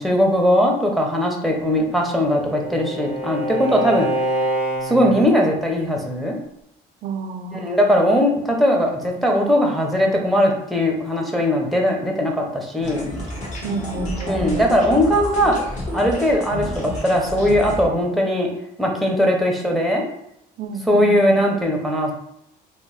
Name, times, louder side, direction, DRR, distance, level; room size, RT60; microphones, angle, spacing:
voice 1, 0.0-4.1 4.8-6.4 7.5-13.1 14.3-15.5 15.9-18.5 18.8-20.0 20.9-22.1, equal, ahead, 0 dB, 0.7 m, -19 dB
Bowed string instrument, 1.7-5.3, right 1 dB, 85° left, 0.9 m, -26 dB
voice 2, 7.0-7.8 13.6-14.6 20.6-21.4, right 4 dB, 50° right, 8 dB, 0.4 m, -30 dB
sound 1, 12.8-17.8, equal, 45° left, 1.2 m, -30 dB
2.9 x 2.1 x 4.0 m, 0.78 s
cardioid pair, 110°, 17 cm